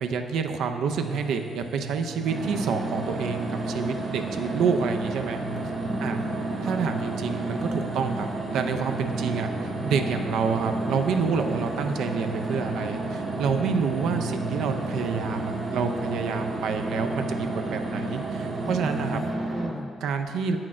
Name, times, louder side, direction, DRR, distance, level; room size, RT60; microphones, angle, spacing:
voice 1, 0.0-5.4 6.0-6.2 6.6-8.3 8.5-9.5 9.8-19.2 20.0-20.6, right 6 dB, 80° right, 6 dB, 0.4 m, -28 dB
sound 1, 0.9-19.3, right 5 dB, 35° right, 0.8 m, -39 dB
sound 2, 2.2-19.7, right 2 dB, 60° right, 1.3 m, -31 dB
voice 2, 5.8-7.0 18.6-19.9, equal, 5° left, 6 dB, 0.3 m, -37 dB
7.5 x 5.9 x 2.4 m, 2.1 s
cardioid pair, 90°, 0 cm